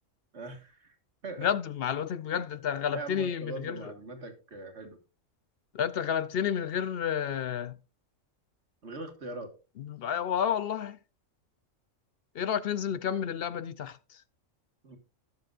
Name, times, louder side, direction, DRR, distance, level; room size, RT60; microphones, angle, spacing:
voice 1, 0.3-1.0 1.2-1.5 2.9-5.0 8.8-9.5 14.8-15.0, right 3 dB, 60° right, 2.0 m, -41 dB
voice 2, 1.4-3.9 5.7-7.8 9.8-11.0 12.3-14.2, left 8 dB, 60° left, 0.7 m, -31 dB
18.0 x 6.8 x 2.5 m
omnidirectional pair, 1.3 m